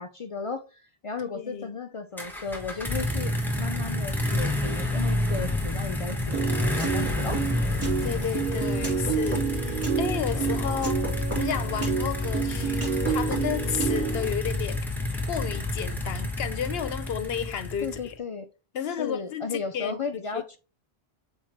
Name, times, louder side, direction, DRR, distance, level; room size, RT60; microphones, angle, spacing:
voice 1, 0.0-6.4 6.7-7.4 17.8-18.5 19.0-20.6, left 4 dB, 50° left, 0.4 m, -35 dB
voice 2, 1.2-1.8 8.0-11.1 11.3-14.9 15.3-18.1 18.7-20.0 20.3-20.6, left 8 dB, 70° left, 0.9 m, -32 dB
sound 1, 2.2-18.1, left 1 dB, ahead, 1.2 m, -29 dB
Piano, 6.3-14.3, right 6 dB, 15° right, 2.9 m, -29 dB
7.1 x 4.4 x 3.0 m
omnidirectional pair, 1.1 m